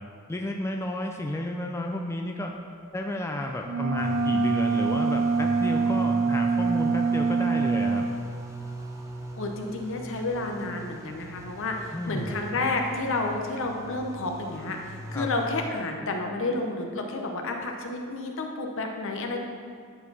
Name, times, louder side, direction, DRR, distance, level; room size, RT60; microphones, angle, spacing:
voice 1, 0.3-2.5 2.9-8.0 11.9-12.4 15.1-15.3, left 1 dB, 10° left, 2 dB, 0.3 m, -32 dB
sound 1, 3.6-8.1, right 4 dB, 60° right, 0.4 m, -24 dB
sound 2, 4.0-15.7, right 1 dB, 15° right, 0.7 m, -40 dB
voice 2, 9.4-19.4, left 2 dB, 65° left, 3 dB, 0.8 m, -30 dB
10.0 x 4.5 x 4.1 m, 2.1 s
head